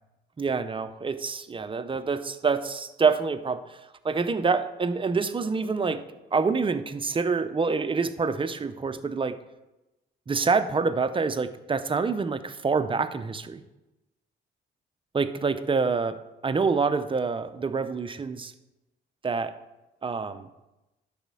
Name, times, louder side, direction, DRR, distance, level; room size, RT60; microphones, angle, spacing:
voice 1, 0.4-6.0 6.3-9.4 10.3-13.6 15.1-18.5 19.2-19.6 20.0-20.5, right 4 dB, 25° right, 11 dB, 0.6 m, -26 dB
11.0 x 4.2 x 6.1 m, 1.0 s
cardioid pair, 90°, 20 cm